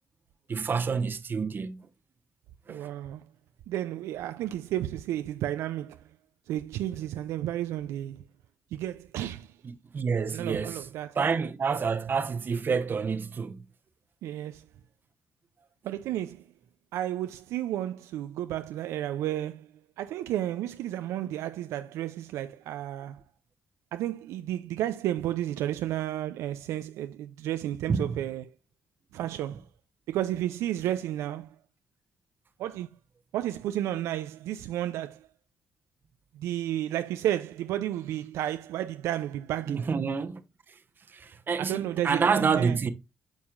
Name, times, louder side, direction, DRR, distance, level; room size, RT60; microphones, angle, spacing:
voice 1, 0.5-1.8 2.7-2.8 9.9-10.8 11.2-13.6 27.9-28.2 39.7-40.4 41.1-42.9, right 5 dB, 45° right, 0.9 m, -28 dB
voice 2, 2.7-3.2 3.7-6.0 6.5-8.2 8.7-9.5 10.3-11.2 14.2-14.6 15.8-16.4 16.9-19.7 20.0-23.2 23.9-28.5 29.1-29.6 30.1-31.5 32.6-32.9 33.3-35.3 36.3-39.9 41.6-42.8, right 12 dB, 80° right, 0.4 m, -32 dB
8.9 x 5.5 x 2.4 m
supercardioid pair, 65°, 5 cm